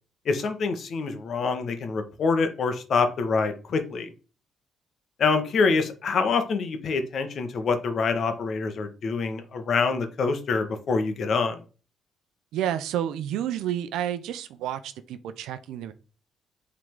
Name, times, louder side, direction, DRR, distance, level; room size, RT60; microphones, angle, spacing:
voice 1, 0.2-4.1 5.2-11.6, left 4 dB, 60° left, 7 dB, 1.4 m, -26 dB
voice 2, 12.5-15.9, right 10 dB, 90° right, 12 dB, 0.6 m, -30 dB
7.6 x 3.8 x 3.7 m, 0.35 s
cardioid pair, 90°, 0 cm